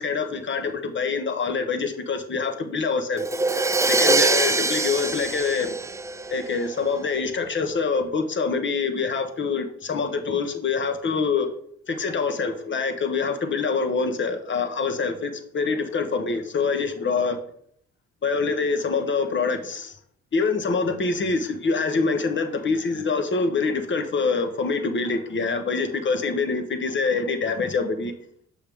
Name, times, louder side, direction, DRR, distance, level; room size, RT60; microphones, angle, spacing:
voice 1, 0.0-3.2 3.9-5.7 6.3-11.5 11.9-17.4 18.2-20.0 20.3-28.1, left 4 dB, 40° left, 1.0 m, -25 dB
Crash cymbal, 3.2-6.9, right 3 dB, 10° right, 0.3 m, -23 dB
6.6 x 5.6 x 3.5 m
cardioid pair, 90°, 30 cm